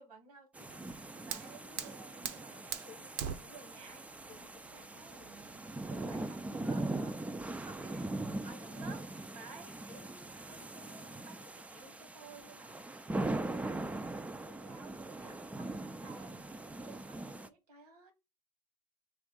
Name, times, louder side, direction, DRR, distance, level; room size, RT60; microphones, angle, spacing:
voice 1, 0.0-8.2 8.4-13.1 13.3-18.1, right 3 dB, 90° right, 1.4 m, -56 dB
sound 1, 0.5-17.5, right 2 dB, 5° right, 0.3 m, -41 dB
Fire, 0.7-6.6, right 9 dB, 65° right, 0.7 m, -44 dB
3.5 x 2.5 x 3.7 m
hypercardioid pair, 90°, 19 cm